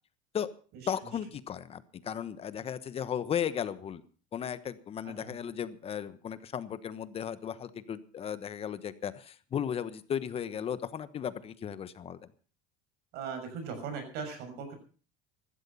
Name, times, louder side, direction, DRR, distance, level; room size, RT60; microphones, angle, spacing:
voice 1, 0.9-4.0 4.3-12.3, left 8 dB, 30° left, 14 dB, 1.2 m, -35 dB
voice 2, 13.1-14.7, right 5 dB, 60° right, 6 dB, 6.7 m, -39 dB
15.5 x 12.5 x 5.6 m, 0.40 s
supercardioid pair, 130°, 19 cm